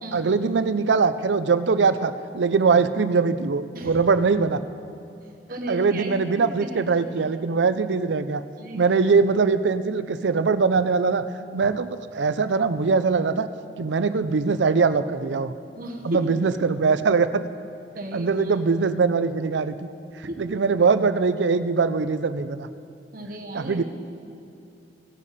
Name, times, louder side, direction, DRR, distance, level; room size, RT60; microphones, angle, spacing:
voice 1, 0.1-4.6 5.7-8.4 8.7-11.2 11.5-13.5 13.8-15.5 16.0-17.5 18.1-19.9 20.4-22.7 23.5-23.8, right 4 dB, 85° right, 13 dB, 0.5 m, -22 dB
voice 2, 5.5-6.8 7.2-7.3 8.6-8.9 15.7-16.3 17.9-18.5 20.2-20.4 23.1-23.8, right 1 dB, 55° right, 2 dB, 1.2 m, -35 dB
16.5 x 9.9 x 4.2 m, 2.6 s
head